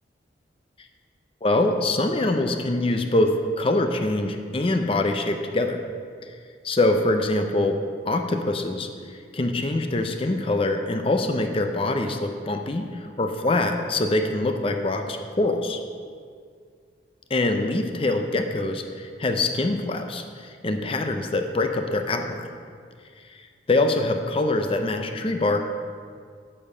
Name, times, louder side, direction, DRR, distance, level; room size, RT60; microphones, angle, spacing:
voice 1, 1.4-5.8 6.2-6.4 6.6-7.8 8.1-15.8 17.3-22.5 23.3-25.7, left 2 dB, 30° left, 5 dB, 0.5 m, -24 dB
8.7 x 6.8 x 5.5 m, 2.1 s
head